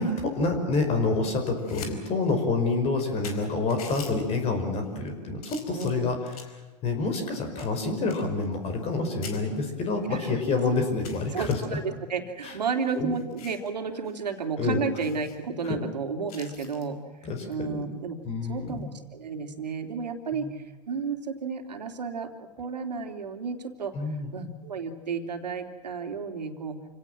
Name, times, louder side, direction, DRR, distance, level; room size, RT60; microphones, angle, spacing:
voice 1, 0.0-6.4 6.8-11.8 12.4-12.6 12.9-13.2 14.6-14.8 15.6-15.8 17.2-17.8 18.2-18.9 20.3-20.5 23.9-24.3, left 3 dB, 30° left, 6 dB, 5.4 m, -28 dB
sound 1, 1.4-1.9 2.3-2.4 2.9-3.0 3.2-4.1 4.8-5.1 5.4-6.6 7.1-9.0 9.2-9.4 10.0-10.1 10.4-10.5 11.0-11.5 12.4-13.7 14.0-14.2 14.5-14.6 15.0-15.4 16.3-16.9 18.6-18.8, left 6 dB, 65° left, 4.8 m, -45 dB
voice 2, 5.7-6.1 10.1-10.4 10.8-10.9 11.3-17.0 17.5-18.2 18.5-22.3 22.6-23.9 24.3-26.8, right 5 dB, 75° right, 5 dB, 3.3 m, -32 dB
28.5 x 18.0 x 7.6 m, 1.3 s
hypercardioid pair, 110°, 21 cm